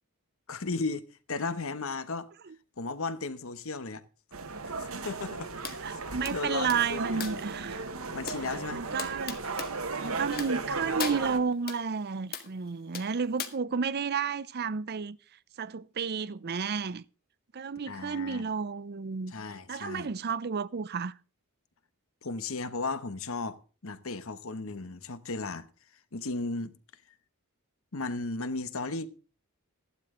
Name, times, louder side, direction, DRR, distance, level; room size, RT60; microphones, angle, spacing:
voice 1, 0.5-2.3 2.8-4.0 4.8-5.5 5.9-7.3 8.1-8.8 17.9-18.5 19.3-20.1 22.2-25.7 26.1-26.7 27.9-29.1, left 3 dB, 65° left, 1.1 m, -35 dB
sound 1, 4.3-11.4, right 3 dB, 65° right, 1.3 m, -36 dB
sound 2, 5.6-5.8 6.2-7.5 8.3-8.4 9.0-9.7 10.3-10.7 11.0-11.8 12.3-12.5 12.9-13.5, left 7 dB, 45° left, 1.7 m, -38 dB
voice 2, 5.8-7.8 8.7-9.4 10.0-15.2 15.6-17.0 17.5-19.3 19.7-21.1, right 5 dB, 45° right, 0.5 m, -31 dB
14.5 x 12.0 x 3.8 m
head